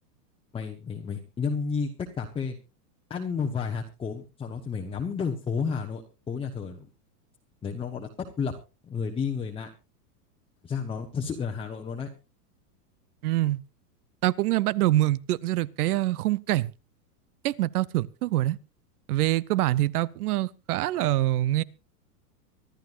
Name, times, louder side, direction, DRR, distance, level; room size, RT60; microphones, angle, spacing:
voice 1, 0.5-2.6 3.1-6.9 7.6-8.5 8.8-9.7 10.6-12.1, left 5 dB, 10° left, 1.0 m, -31 dB
voice 2, 13.2-13.6 14.2-16.7 17.4-18.6 19.1-21.6, right 16 dB, 65° right, 0.8 m, -25 dB
25.0 x 11.5 x 2.5 m
supercardioid pair, 145°, 48 cm